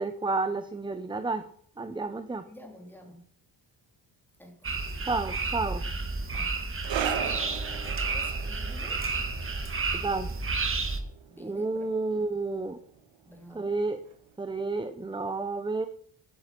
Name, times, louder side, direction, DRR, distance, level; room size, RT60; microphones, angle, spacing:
voice 1, 0.0-1.4 1.8-2.4 5.0-5.8 9.9-10.3 11.4-12.8 13.5-14.0 14.4-15.9, right 3 dB, 10° right, 10 dB, 0.7 m, -30 dB
voice 2, 2.5-3.2 4.4-4.5 6.3-6.6 7.2-7.6 7.8-9.0 11.3-11.9 13.2-13.8, left 1 dB, 5° left, 2 dB, 3.5 m, -48 dB
sound 1, 4.6-11.0, right 3 dB, 30° right, 2.2 m, -31 dB
sound 2, 6.8-13.8 14.1-14.3 15.1-15.2, right 9 dB, 90° right, 1.7 m, -39 dB
11.0 x 11.0 x 6.0 m, 0.63 s
cardioid pair, 140°, 44 cm